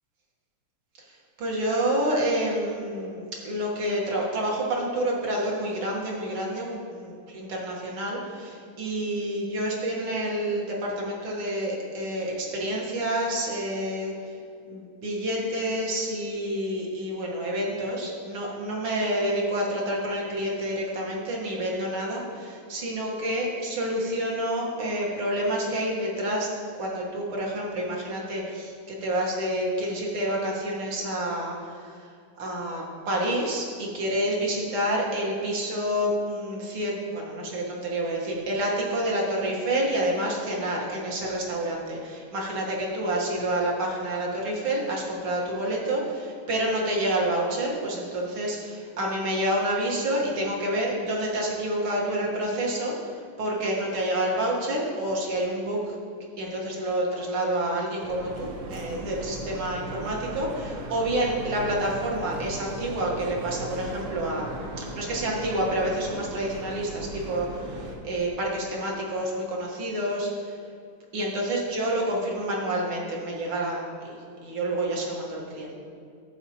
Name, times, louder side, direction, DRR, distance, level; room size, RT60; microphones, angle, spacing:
voice 1, 1.4-14.1 14.7-26.5 26.8-32.0 32.4-52.9 53.4-55.9 56.4-64.5 64.8-70.6 71.1-75.7, right 1 dB, 70° right, -3 dB, 2.1 m, -28 dB
sound 1, 58.0-68.0, right 1 dB, 90° right, 2.0 m, -37 dB
11.5 x 7.6 x 2.9 m, 2.3 s
omnidirectional pair, 2.4 m